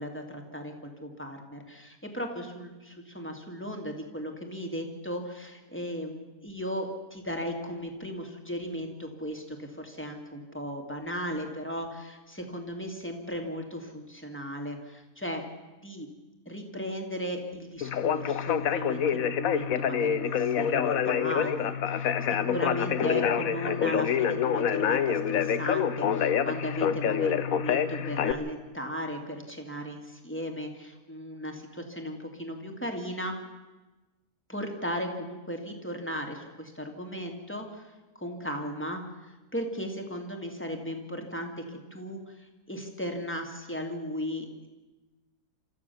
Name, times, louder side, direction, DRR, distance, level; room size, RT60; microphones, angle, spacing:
voice 1, 0.0-15.4 15.8-16.1 16.5-33.3 34.5-37.8 38.1-44.7, equal, 5° left, 3 dB, 2.5 m, -36 dB
Conversation, 17.8-28.3, left 8 dB, 60° left, 1.2 m, -27 dB
28.0 x 14.0 x 7.1 m, 1.2 s
omnidirectional pair, 1.7 m